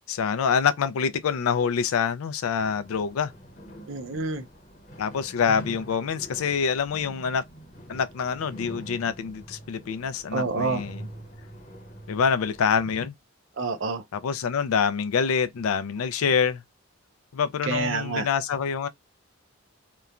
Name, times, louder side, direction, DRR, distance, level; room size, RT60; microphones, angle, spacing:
voice 1, 0.1-3.3 5.0-7.4 7.9-11.0 12.1-13.1 14.1-16.6 17.3-18.9, left 6 dB, 85° left, 0.4 m, -26 dB
sound 1, 2.6-12.7, equal, 35° left, 0.8 m, -44 dB
voice 2, 3.9-4.5 10.3-10.8 13.6-14.0 17.6-18.3, right 4 dB, 65° right, 0.5 m, -28 dB
2.9 x 2.1 x 2.4 m
head